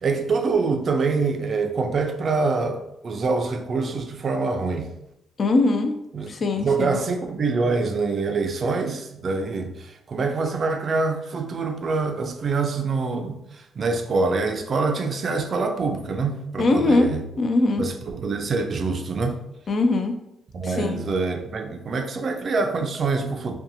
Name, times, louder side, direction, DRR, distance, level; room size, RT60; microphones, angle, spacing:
voice 1, 0.0-4.9 6.1-6.3 6.6-17.2 17.8-19.4 20.5-23.5, right 4 dB, 45° right, 0.4 m, -25 dB
voice 2, 5.4-5.9 6.3-7.0 16.6-17.1 17.4-17.8 19.7-20.1 20.6-21.0, left 2 dB, 45° left, 0.3 m, -21 dB
2.7 x 2.2 x 2.6 m
cardioid pair, 90°, 0 cm